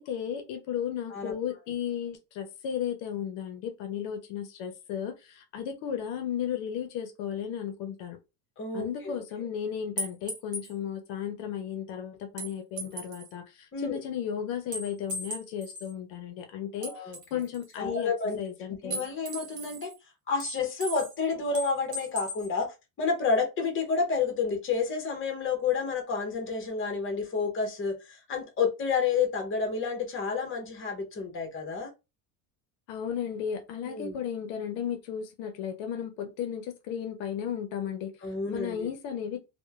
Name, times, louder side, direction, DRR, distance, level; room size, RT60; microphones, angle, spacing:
voice 1, 0.0-8.2 8.7-18.1 18.4-19.0 32.9-38.1 38.5-39.4, left 8 dB, 70° left, 0.6 m, -34 dB
voice 2, 8.6-9.2 13.7-14.0 16.8-17.4 17.8-18.4 18.8-19.9 20.3-31.9 33.8-34.2 38.2-38.9, left 5 dB, 25° left, 0.8 m, -30 dB
sound 1, 10.0-10.7 12.4-13.3 14.7-15.9 16.8-17.8 18.9-19.9 20.4-21.2 21.5-22.5, right 1 dB, 40° right, 1.3 m, -37 dB
2.9 x 2.2 x 2.3 m
supercardioid pair, 115°, 47 cm